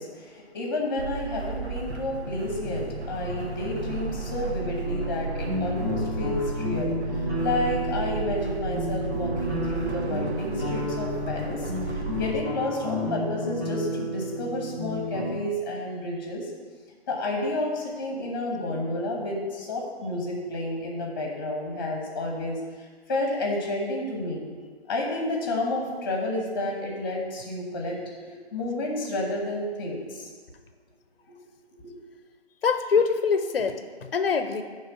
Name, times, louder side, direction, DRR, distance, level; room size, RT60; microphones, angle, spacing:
voice 1, 0.0-16.5 17.1-22.6 23.1-24.5 24.9-28.0 28.5-30.3, left 2 dB, 20° left, 0 dB, 1.1 m, -30 dB
sound 1, 1.0-12.4, right 3 dB, 90° right, 1.0 m, -33 dB
sound 2, 4.8-15.3, equal, 15° right, 1.0 m, -32 dB
voice 2, 32.6-34.6, left 5 dB, 60° left, 8 dB, 0.7 m, -24 dB
9.3 x 3.4 x 5.7 m, 1.6 s
figure-of-eight pair, 160°, 33 cm